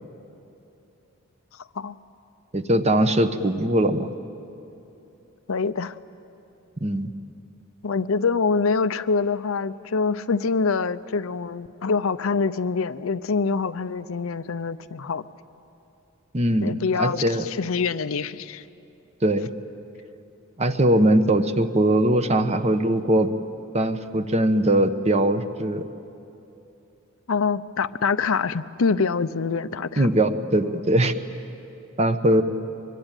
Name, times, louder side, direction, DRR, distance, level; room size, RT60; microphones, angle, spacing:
voice 1, 2.5-4.1 6.8-7.1 16.3-17.4 19.2-19.5 20.6-23.3 23.7-25.8 30.0-31.1 32.0-32.4, right 1 dB, 30° right, 9 dB, 1.0 m, -21 dB
voice 2, 5.5-5.9 7.8-15.2 16.6-18.6 27.3-30.1, left 4 dB, 80° left, 13 dB, 0.6 m, -25 dB
23.5 x 23.5 x 9.0 m, 2.9 s
head